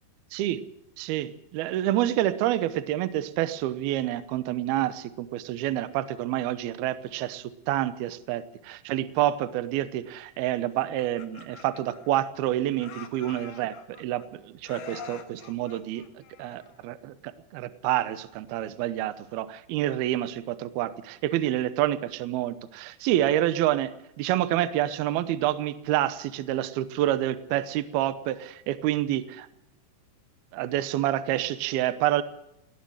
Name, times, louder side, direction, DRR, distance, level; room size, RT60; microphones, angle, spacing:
voice 1, 0.3-0.6 1.0-16.0 16.4-23.9 24.2-29.5 30.5-32.2, right 13 dB, 80° right, 13 dB, 2.2 m, -28 dB
Laughter, 10.8-12.5 12.8-14.3 14.6-16.9, left 8 dB, 65° left, 2.9 m, -45 dB
19.0 x 14.0 x 9.9 m, 0.82 s
omnidirectional pair, 5.7 m